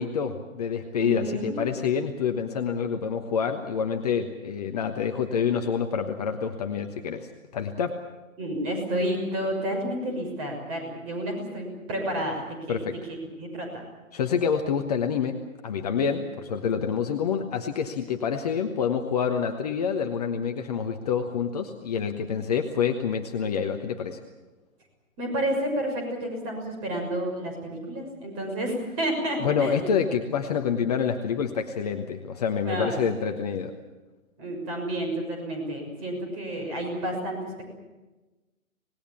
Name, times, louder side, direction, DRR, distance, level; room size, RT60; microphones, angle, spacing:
voice 1, 0.0-8.0 12.7-12.9 14.1-15.4 15.6-24.2 29.4-33.7, left 7 dB, 30° left, 5 dB, 1.2 m, -27 dB
voice 2, 1.0-1.6 8.4-12.8 13.4-13.8 25.2-29.9 32.6-33.0 34.4-37.7, right 1 dB, 25° right, 2 dB, 6.5 m, -30 dB
26.0 x 19.5 x 7.3 m, 1.1 s
figure-of-eight pair, 130°, 41 cm